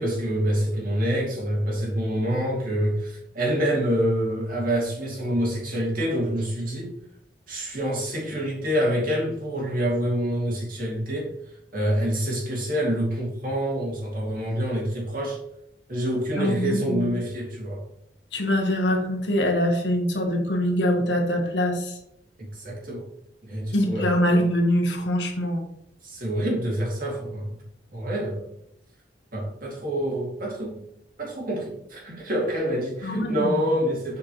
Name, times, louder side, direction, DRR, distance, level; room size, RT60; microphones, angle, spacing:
voice 1, 0.0-6.9 7.5-11.3 11.7-15.4 15.9-17.8 22.6-23.1 23.4-24.1 26.0-27.5 27.9-28.4 29.3-30.8 31.2-34.2, equal, 55° right, -2 dB, 2.4 m, -26 dB
voice 2, 16.4-17.1 18.3-22.0 23.7-25.7 33.0-33.5, left 1 dB, 85° left, 3 dB, 1.5 m, -23 dB
7.5 x 5.2 x 3.1 m, 0.77 s
head